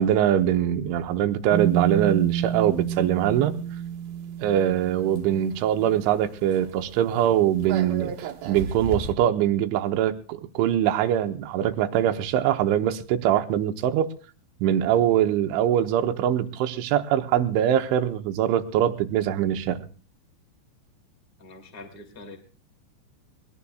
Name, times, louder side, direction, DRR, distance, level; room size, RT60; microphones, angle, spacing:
voice 1, 0.0-3.5 4.4-8.1 8.5-14.1 14.6-19.8, right 10 dB, 80° right, 8 dB, 3.1 m, -23 dB
sound 1, 1.5-6.2 6.5-6.7 6.9-9.1, right 9 dB, 60° right, 2.8 m, -30 dB
voice 2, 21.4-22.4, left 2 dB, 25° left, 4 dB, 1.3 m, -44 dB
21.5 x 21.0 x 2.4 m, 0.37 s
omnidirectional pair, 5.9 m